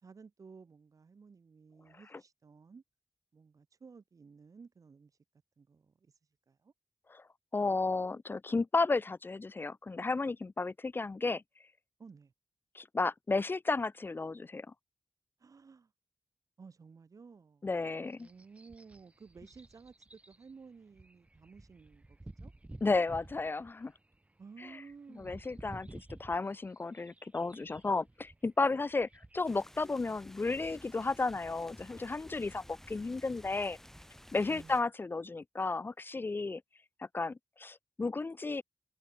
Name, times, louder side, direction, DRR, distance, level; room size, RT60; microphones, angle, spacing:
voice 1, 0.0-2.8 3.3-5.2 5.6-6.7 12.0-12.3 15.4-15.9 16.6-17.7 18.2-22.5 24.4-25.6 34.5-34.8, right 5 dB, 65° right, 2.4 m, -55 dB
voice 2, 7.5-11.4 12.7-14.7 17.6-18.3 22.8-23.9 25.2-33.8 34.3-36.6 37.0-38.6, left 3 dB, 35° left, 0.5 m, -33 dB
sound 1, 17.8-29.5, right 2 dB, 20° right, 6.8 m, -53 dB
sound 2, 29.4-34.8, equal, 5° left, 4.4 m, -54 dB
wide cardioid pair, 115°, 6 cm